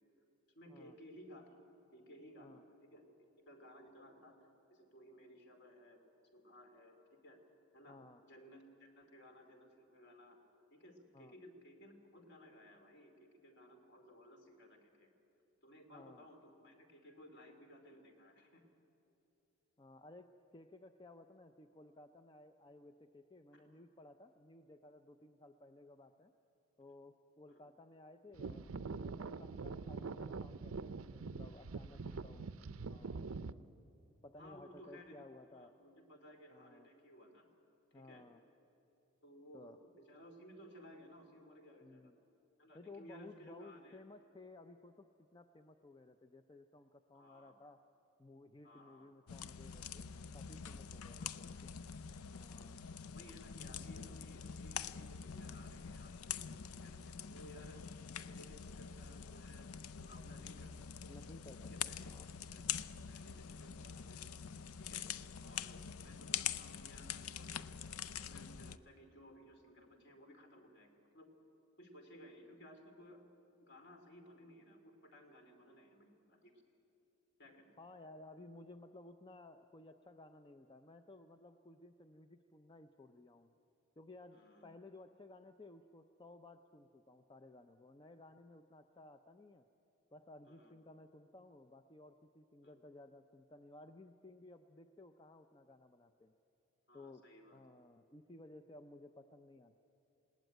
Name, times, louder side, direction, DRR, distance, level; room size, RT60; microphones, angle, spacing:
voice 1, 0.5-1.5 1.9-2.6 2.9-3.0 3.5-4.4 4.7-6.0 6.3-7.4 7.7-10.4 10.7-15.1 15.6-18.6 23.5-23.8 27.5-27.6 32.1-32.2 34.4-35.2 35.5-37.5 37.9-38.2 39.2-42.1 42.6-44.0 47.1-47.5 48.6-49.1 51.1-51.6 53.1-57.8 58.2-61.0 61.7-62.1 62.5-64.3 64.8-65.0 65.4-67.6 67.9-71.3 71.8-73.2 73.6-76.5 77.4-77.7 84.3-84.7 90.5-90.7 92.6-92.7 96.9-97.6, equal, 50° left, 4 dB, 2.8 m, -59 dB
voice 2, 7.9-8.2 11.1-11.3 15.9-16.3 19.8-26.3 26.8-32.5 32.9-33.3 34.2-35.7 36.5-36.9 37.9-38.4 39.5-39.8 41.8-42.1 42.7-47.8 48.2-51.7 52.3-52.9 61.1-62.3 77.8-83.5 84.0-89.7 90.1-96.3 96.9-97.2 97.5-99.8, left 2 dB, 20° left, 8 dB, 0.5 m, -57 dB
sound 1, 28.3-33.5, right 4 dB, 70° right, 0.6 m, -44 dB
sound 2, 49.3-68.8, left 8 dB, 85° left, 0.5 m, -45 dB
20.0 x 18.0 x 9.2 m, 2.9 s
head